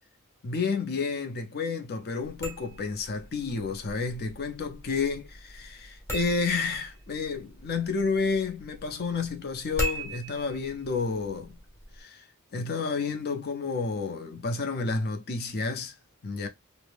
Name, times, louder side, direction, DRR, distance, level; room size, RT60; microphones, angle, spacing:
voice 1, 0.4-11.6 11.9-16.0 16.2-16.5, left 4 dB, 45° left, 0.5 m, -30 dB
sound 1, 2.2-12.0, right 1 dB, 10° left, 0.8 m, -40 dB
2.6 x 2.0 x 3.1 m
head